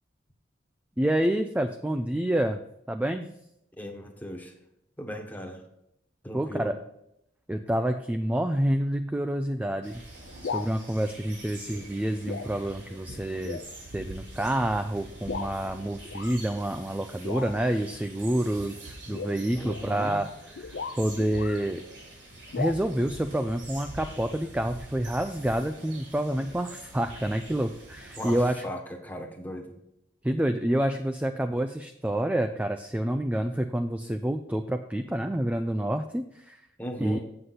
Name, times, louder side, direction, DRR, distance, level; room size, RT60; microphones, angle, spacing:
voice 1, 1.0-2.6 2.9-3.3 6.3-6.8 7.5-10.0 10.4-13.6 13.9-21.8 22.6-28.6 30.2-36.6 37.0-37.2, right 1 dB, 10° right, 7 dB, 0.3 m, -28 dB
voice 2, 3.8-4.5 5.0-5.6 6.2-6.7 19.5-20.2 28.2-29.8 36.8-37.2, equal, 10° left, 3 dB, 1.2 m, -37 dB
sound 1, 9.8-28.4, right 1 dB, 70° right, 3.6 m, -45 dB
sound 2, 10.3-10.7 11.7-11.9 12.3-12.6 12.9-13.0 13.4-13.7 14.4-14.5 15.3-15.6 16.1-16.4 17.2-17.8 19.1-21.7 22.5-22.7, left 5 dB, 70° left, 0.4 m, -36 dB
8.0 x 7.8 x 4.1 m, 0.81 s
head